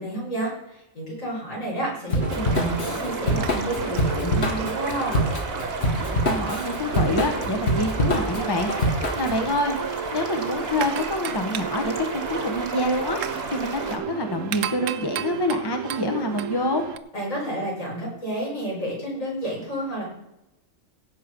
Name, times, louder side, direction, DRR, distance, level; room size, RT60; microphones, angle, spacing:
voice 1, 0.0-5.2 17.1-20.0, right 1 dB, 70° left, -5 dB, 6.4 m, -30 dB
Drum kit / Drum, 2.1-9.4, equal, 50° left, 1.8 m, -25 dB
sound 1, 2.2-17.0, right 9 dB, 75° right, 1.0 m, -34 dB
sound 2, 2.3-14.0, right 3 dB, 45° right, 1.8 m, -33 dB
voice 2, 6.2-16.8, left 1 dB, 20° left, 4 dB, 1.3 m, -27 dB
16.5 x 6.7 x 5.4 m, 0.89 s
omnidirectional pair, 1.4 m